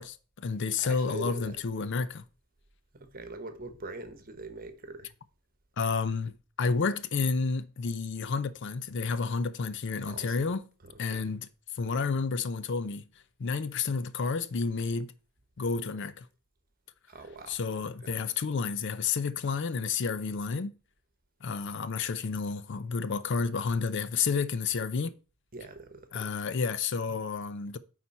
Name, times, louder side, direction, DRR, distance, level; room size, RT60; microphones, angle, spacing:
voice 1, 0.0-2.3 5.8-10.6 11.0-11.5 11.7-13.1 13.4-15.1 15.6-16.3 17.5-20.7 21.4-25.2 26.1-27.8, left 5 dB, 55° left, 0.5 m, -30 dB
voice 2, 0.8-1.6 2.9-5.1 10.0-10.5 10.8-11.3 17.1-18.2 25.5-26.3, right 2 dB, 40° right, 1.1 m, -43 dB
8.9 x 4.1 x 4.2 m
head